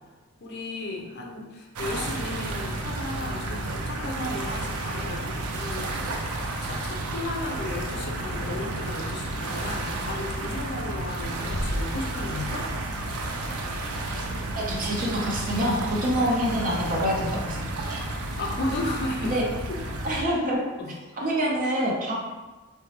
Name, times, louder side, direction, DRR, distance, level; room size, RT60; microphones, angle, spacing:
voice 1, 0.4-6.3 6.6-12.7 18.4-19.4 19.7-19.8 20.1-20.2 20.8-20.9 21.2-21.3, left 2 dB, 50° left, 0 dB, 0.5 m, -34 dB
sound 1, 1.8-20.2, right 2 dB, 85° right, 0.4 m, -32 dB
sound 2, 11.5-13.1, equal, 10° left, 0.7 m, -34 dB
voice 2, 14.6-18.0 19.3-19.4 20.0-20.6 21.2-22.1, equal, 40° right, -3 dB, 0.7 m, -26 dB
3.9 x 2.2 x 2.9 m, 1.2 s
head